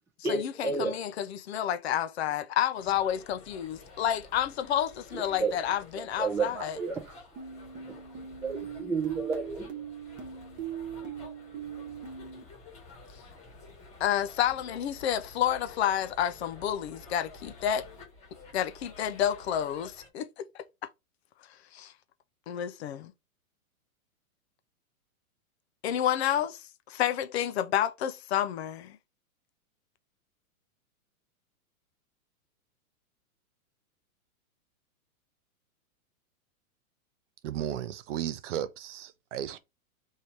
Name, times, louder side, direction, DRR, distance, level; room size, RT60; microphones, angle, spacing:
voice 1, 0.2-1.0 5.1-5.5 5.9-7.2 7.9-9.7, right 4 dB, 5° right, 0.5 m, -32 dB
voice 2, 0.8-6.8 14.0-17.9 18.5-20.9 21.7-21.9 22.5-23.1 25.8-29.0, left 10 dB, 50° left, 0.5 m, -30 dB
sound 1, 2.7-20.1, left 3 dB, 15° left, 1.3 m, -51 dB
sound 2, 7.4-12.4, right 8 dB, 25° right, 1.1 m, -40 dB
voice 3, 37.4-39.6, right 10 dB, 55° right, 0.6 m, -34 dB
3.1 x 2.8 x 4.5 m
hypercardioid pair, 150°, 44 cm